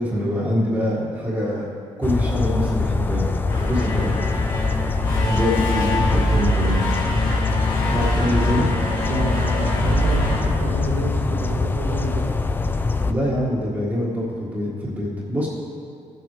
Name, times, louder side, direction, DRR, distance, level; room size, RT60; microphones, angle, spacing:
voice 1, 0.0-1.7 2.0-3.2 3.6-4.2 5.2-6.8 7.9-8.7 13.0-15.5, equal, 15° right, -9 dB, 1.6 m, -24 dB
sound 1, 2.0-13.1, left 3 dB, 15° left, 0.3 m, -23 dB
sound 2, 3.5-11.3, equal, 35° left, 2.3 m, -26 dB
voice 2, 9.0-12.2, right 1 dB, 75° right, -7 dB, 1.9 m, -29 dB
16.0 x 7.7 x 3.1 m, 2.4 s
cardioid pair, 150°, 12 cm